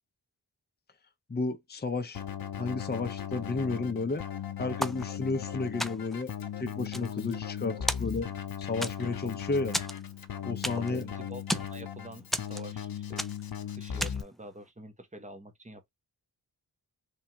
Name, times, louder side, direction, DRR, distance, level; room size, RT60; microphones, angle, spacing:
voice 1, 1.3-2.2 2.6-4.2 4.6-8.3 8.6-9.8 10.4-11.0, left 3 dB, 25° left, 0.7 m, -32 dB
Keyboard (musical), 2.1-14.2, left 9 dB, 60° left, 0.9 m, -38 dB
sound 1, 4.8-5.5 5.8-6.3 6.7-7.6 7.9-8.4 8.8-9.3 9.7-11.0 11.3-11.8 12.3-12.9 13.2-13.5 14.0-14.4, equal, ahead, 0.4 m, -34 dB
voice 2, 10.9-13.3 13.7-15.9, right 1 dB, 20° right, 1.2 m, -47 dB
4.3 x 3.5 x 2.8 m
wide cardioid pair, 100°, 41 cm